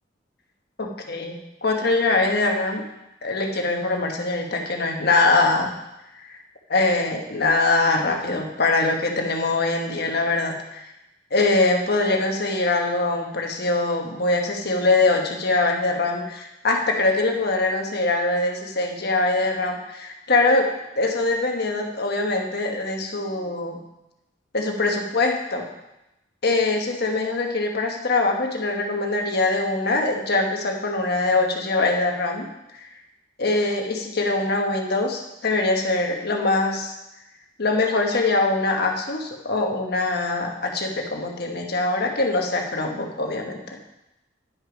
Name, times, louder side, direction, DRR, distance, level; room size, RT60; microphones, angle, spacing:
voice 1, 0.8-2.8 3.2-5.7 6.3-6.4 6.7-10.9 11.3-20.7 21.0-23.8 24.5-25.7 26.4-32.5 33.4-36.9 37.6-43.6, left 2 dB, 60° left, 2 dB, 1.3 m, -23 dB
11.0 x 6.3 x 5.2 m, 0.93 s
head